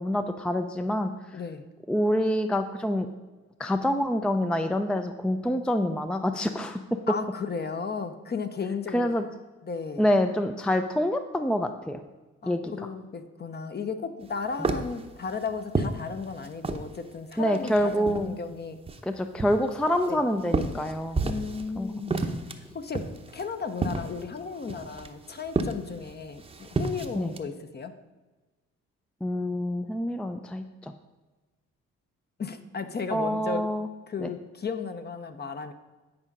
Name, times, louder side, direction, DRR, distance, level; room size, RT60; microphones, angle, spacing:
voice 1, 0.0-1.4 1.9-3.1 3.6-7.0 8.9-9.2 10.0-12.0 12.4-12.7 17.4-18.4 19.0-21.2 21.8-21.9 27.2-27.3 29.2-30.9 33.1-33.9 34.2-34.3, equal, 5° left, 7 dB, 0.4 m, -26 dB
voice 2, 1.3-1.7 7.1-9.1 9.6-10.1 12.4-18.8 20.1-20.2 21.2-22.2 22.7-23.1 23.3-27.9 32.4-33.7 34.1-35.7, left 5 dB, 35° left, 9 dB, 0.8 m, -34 dB
sound 1, 14.2-17.0 17.3-18.4 18.9-21.7 22.0-27.4, right 3 dB, 20° right, 0.8 m, -31 dB
9.8 x 4.9 x 5.4 m, 1.2 s
cardioid pair, 90°, 30 cm